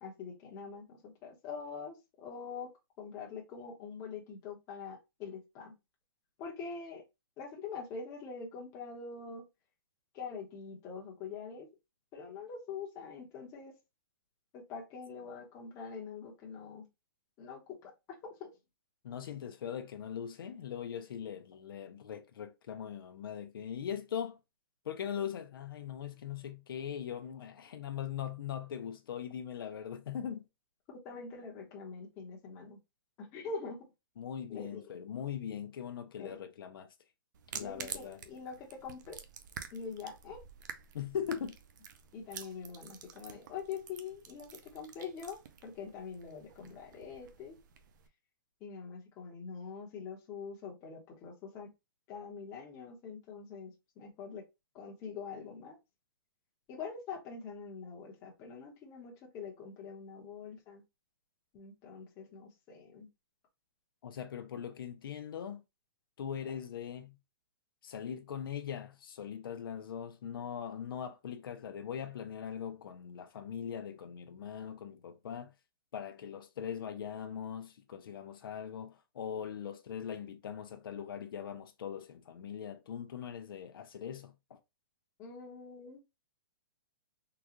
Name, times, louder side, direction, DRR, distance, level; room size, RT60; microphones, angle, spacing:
voice 1, 0.0-2.7 3.0-5.7 6.4-7.0 7.4-9.5 10.1-11.7 12.1-13.7 14.5-16.9 17.4-17.9 18.2-18.5 30.9-32.8 33.2-33.9 34.5-34.9 36.2-36.4 37.5-39.2 39.7-40.4 42.1-47.6 48.6-51.7 52.1-54.4 54.7-55.8 56.7-60.8 61.5-63.1 85.2-86.0, left 5 dB, 25° left, 1.0 m, -44 dB
voice 2, 19.0-24.4 24.8-30.4 34.2-36.9 37.5-38.2 40.9-41.6 64.0-65.6 66.2-67.2 67.8-75.5 75.9-84.6, left 8 dB, 70° left, 0.6 m, -41 dB
sound 1, 37.3-48.1, right 7 dB, 55° right, 0.5 m, -49 dB
3.8 x 2.3 x 3.0 m
hypercardioid pair, 160°, 12 cm